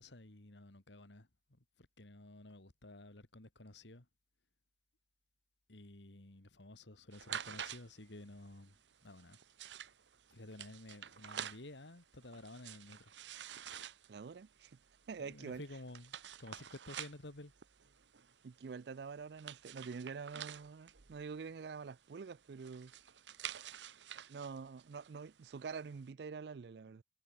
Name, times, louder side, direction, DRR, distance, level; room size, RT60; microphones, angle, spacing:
voice 1, 0.0-4.1 5.7-8.7 9.0-9.4 10.3-13.1 15.1-17.5, left 1 dB, 80° left, 2.3 m, -53 dB
sound 1, 7.1-26.1, right 9 dB, 85° right, 0.9 m, -50 dB
voice 2, 14.1-14.8 15.1-15.6 18.4-22.9 24.3-27.0, right 5 dB, 65° right, 0.4 m, -46 dB
head